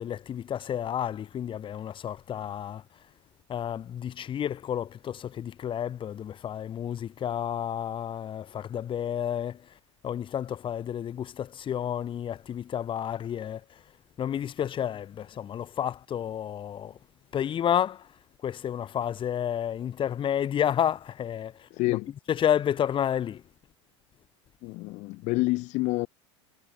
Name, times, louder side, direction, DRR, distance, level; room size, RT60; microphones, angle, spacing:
voice 1, 0.0-2.8 3.5-9.6 10.0-13.6 14.2-17.0 17.3-18.1 18.4-22.0 22.3-23.4, left 9 dB, 30° left, 2.6 m, -30 dB
voice 2, 21.7-22.1 24.6-26.1, left 22 dB, 50° left, 1.2 m, -28 dB
hypercardioid pair, 90°, 16 cm